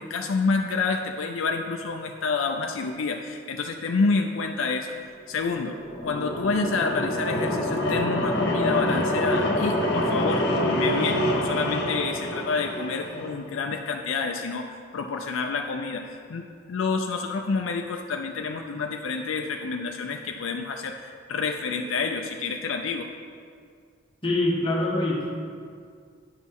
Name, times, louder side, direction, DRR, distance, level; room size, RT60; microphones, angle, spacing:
voice 1, 0.0-5.0 5.3-5.8 6.0-23.1, left 4 dB, 70° left, 3 dB, 0.4 m, -28 dB
sound 1, 5.5-13.4, left 1 dB, 55° left, 1.3 m, -26 dB
voice 2, 24.2-25.4, left 1 dB, 25° left, -3 dB, 1.2 m, -25 dB
9.8 x 6.2 x 3.6 m, 2.2 s
head